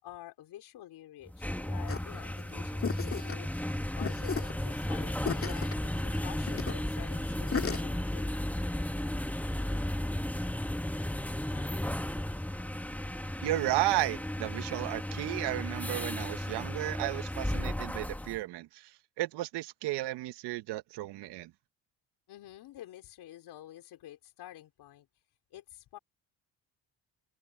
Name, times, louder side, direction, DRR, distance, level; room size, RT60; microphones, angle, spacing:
voice 1, 0.0-3.5 4.0-8.2 11.5-11.8 22.3-25.1 25.5-26.0, left 13 dB, 75° left, 4.3 m, -49 dB
sound 1, 1.3-18.4, left 1 dB, 5° left, 1.6 m, -34 dB
sound 2, 1.9-7.8, left 6 dB, 35° left, 2.5 m, -36 dB
voice 2, 13.4-21.5, right 17 dB, 85° right, 1.0 m, -33 dB
supercardioid pair, 75°, 40 cm